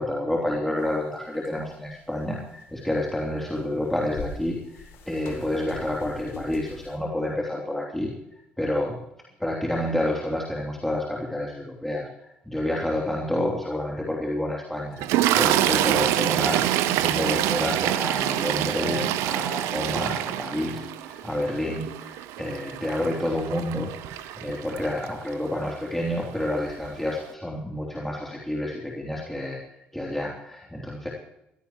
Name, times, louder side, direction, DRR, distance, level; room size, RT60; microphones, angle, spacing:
voice 1, 0.0-8.1 8.6-9.0 9.4-15.0 15.3-29.6 29.9-31.1, left 1 dB, 5° left, -3 dB, 3.1 m, -29 dB
sound 1, 0.8-0.9 1.3-1.9 2.6-2.7 3.7-7.0, left 4 dB, 60° left, 3.0 m, -40 dB
Toilet flush, 15.0-25.3 26.2-26.4 26.7-26.9, right 13 dB, 65° right, 0.8 m, -26 dB
21.0 x 16.0 x 3.1 m, 0.85 s
figure-of-eight pair, 50°, 5 cm